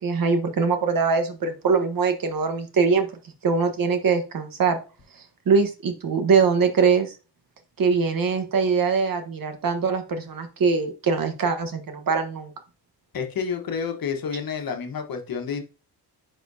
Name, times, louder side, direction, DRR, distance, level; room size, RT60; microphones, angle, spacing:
voice 1, 0.0-3.1 3.4-4.8 5.5-7.1 7.8-12.5, right 5 dB, 55° right, 7 dB, 1.3 m, -22 dB
voice 2, 13.1-15.6, left 6 dB, 55° left, 4 dB, 1.3 m, -29 dB
10.0 x 4.3 x 2.7 m, 0.33 s
wide cardioid pair, 130°, 41 cm